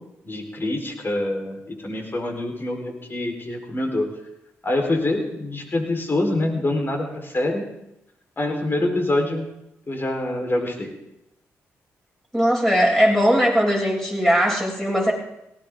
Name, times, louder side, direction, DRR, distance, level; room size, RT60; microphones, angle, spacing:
voice 1, 0.2-4.1 4.6-7.6 8.4-9.5 9.9-10.9, left 1 dB, 35° left, 2 dB, 4.5 m, -25 dB
voice 2, 12.3-15.1, equal, 5° left, -1 dB, 7.5 m, -19 dB
18.5 x 16.5 x 3.9 m, 0.85 s
supercardioid pair, 50°, 6 cm